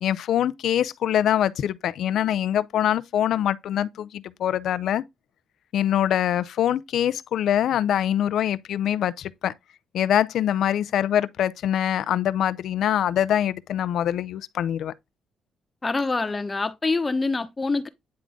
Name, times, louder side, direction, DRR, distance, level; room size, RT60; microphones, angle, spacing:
voice 1, 0.0-5.0 5.7-9.5 9.9-14.9, left 10 dB, 75° left, 0.5 m, -24 dB
voice 2, 15.8-17.9, left 3 dB, 25° left, 1.0 m, -25 dB
9.6 x 3.7 x 3.6 m
cardioid pair, 90°, 0 cm